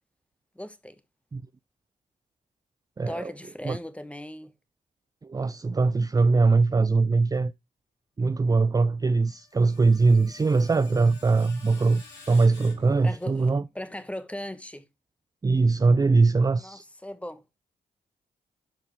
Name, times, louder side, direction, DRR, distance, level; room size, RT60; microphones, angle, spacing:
voice 1, 0.5-1.0 3.1-4.5 13.0-14.8 16.6-17.6, left 1 dB, 5° left, 1.2 m, -38 dB
voice 2, 3.0-3.3 3.6-3.8 5.2-7.5 8.2-13.6 15.4-16.9, right 3 dB, 20° right, 0.4 m, -22 dB
Screech, 9.2-13.5, left 4 dB, 80° left, 3.8 m, -51 dB
11.5 x 4.7 x 3.2 m
supercardioid pair, 50°, 18 cm